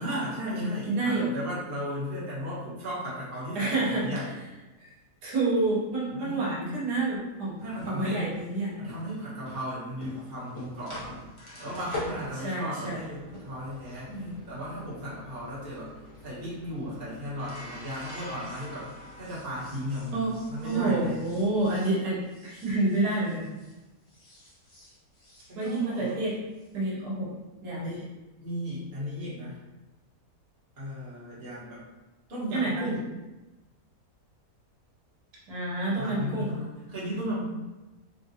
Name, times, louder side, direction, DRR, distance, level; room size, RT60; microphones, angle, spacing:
voice 1, 0.0-4.3 6.1-6.6 7.6-8.4 8.8-11.2 11.6-15.9 16.2-18.9 19.2-21.2 25.5-26.2 27.8-28.1 28.4-29.6 30.8-31.8 32.3-33.0 36.0-37.4, equal, 35° right, -9 dB, 1.2 m, -35 dB
voice 2, 0.5-1.3 3.5-4.1 4.8-4.9 5.2-7.6 7.9-8.7 12.4-13.0 14.1-14.3 20.1-20.3 20.6-23.5 25.5-26.4 26.7-27.3 27.6-27.9 32.5-32.9 35.5-36.5, right 2 dB, 85° right, -6 dB, 1.4 m, -28 dB
sound 1, 7.6-23.8 24.1-26.7, left 1 dB, 45° left, 0.4 m, -45 dB
3.4 x 2.4 x 2.7 m, 1.1 s
omnidirectional pair, 1.6 m